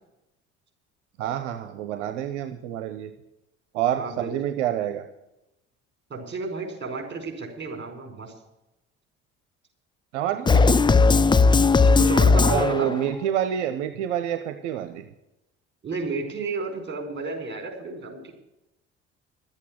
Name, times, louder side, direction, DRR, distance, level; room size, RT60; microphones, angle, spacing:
voice 1, 1.2-3.1 3.7-5.0 10.1-11.0 12.5-15.0, right 10 dB, 75° right, 7 dB, 0.9 m, -28 dB
voice 2, 3.9-4.3 6.1-8.3 11.9-12.9 15.8-18.3, right 3 dB, 30° right, 2 dB, 4.7 m, -32 dB
sound 1, 10.5-13.1, left 4 dB, 15° left, 0.4 m, -17 dB
12.0 x 8.4 x 8.6 m, 0.92 s
hypercardioid pair, 55°, 35 cm